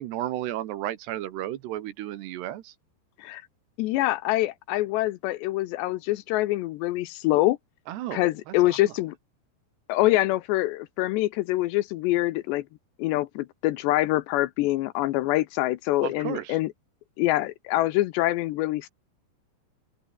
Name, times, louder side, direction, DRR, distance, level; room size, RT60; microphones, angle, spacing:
voice 1, 0.0-2.7 7.9-8.8 16.0-16.6, right 13 dB, 70° right, 3.1 m, -33 dB
voice 2, 3.8-7.6 8.1-9.1 9.9-12.6 13.0-16.7 17.2-18.9, left 17 dB, 80° left, 2.8 m, -25 dB
open air
omnidirectional pair, 5.4 m